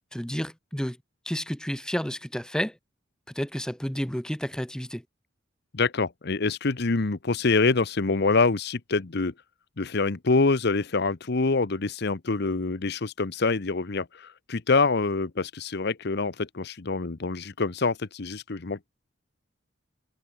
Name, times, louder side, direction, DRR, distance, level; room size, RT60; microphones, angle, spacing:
voice 1, 0.1-1.0 1.2-2.8 3.3-5.0, equal, 5° left, 1.0 m, -31 dB
voice 2, 5.7-9.3 9.8-18.9, left 3 dB, 60° left, 0.9 m, -25 dB
head